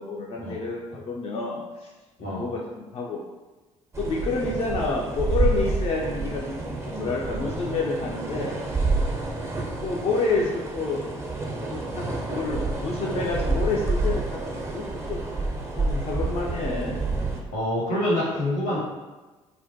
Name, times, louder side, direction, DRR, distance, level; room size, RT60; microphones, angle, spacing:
voice 1, 0.0-1.6 2.2-3.2 4.0-8.6 9.8-11.0 11.7-14.8 15.1-15.2 15.8-17.0, left 3 dB, 35° left, -3 dB, 0.4 m, -29 dB
sound 1, 3.9-17.4, right 3 dB, 15° right, 0.5 m, -28 dB
voice 2, 17.5-18.8, left 1 dB, 75° left, -7 dB, 1.1 m, -26 dB
2.2 x 2.1 x 2.7 m, 1.2 s
hypercardioid pair, 50°, 17 cm